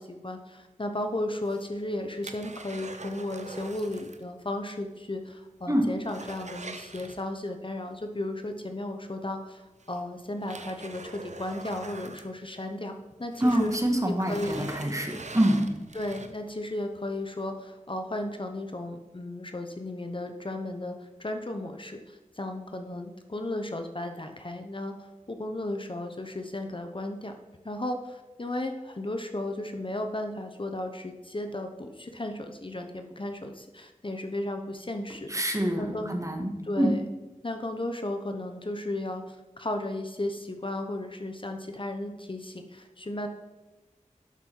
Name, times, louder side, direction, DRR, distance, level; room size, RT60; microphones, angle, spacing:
voice 1, 0.0-12.9 13.2-13.7 14.3-14.7 15.9-27.3 27.6-36.2 36.6-37.0 37.4-43.3, left 1 dB, 40° left, 5 dB, 0.9 m, -35 dB
sound 1, 1.3-4.3 4.6-4.7 5.1-5.2 5.6-7.6 9.0-9.1 9.8-12.9 13.2-16.6 17.1-17.2, right 3 dB, 60° right, 0.8 m, -44 dB
voice 2, 13.4-15.6 35.3-36.9, right 1 dB, 25° right, 3 dB, 1.6 m, -26 dB
12.0 x 5.5 x 4.6 m, 1.1 s
wide cardioid pair, 50°, 14 cm